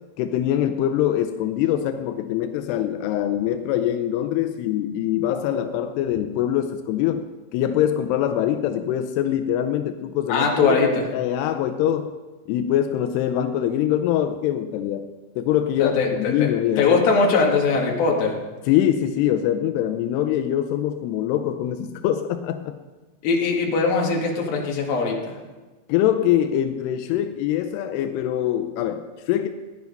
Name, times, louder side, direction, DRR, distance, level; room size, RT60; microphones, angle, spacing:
voice 1, 0.2-7.3 7.5-10.8 11.1-12.1 12.5-15.1 15.4-17.0 18.7-22.8 25.9-29.5, left 11 dB, 85° left, 7 dB, 2.4 m, -23 dB
voice 2, 10.3-11.1 15.8-16.1 16.4-16.5 16.8-18.4 23.2-25.4, left 4 dB, 60° left, -1 dB, 3.3 m, -20 dB
16.0 x 10.5 x 5.3 m, 1.2 s
omnidirectional pair, 5.5 m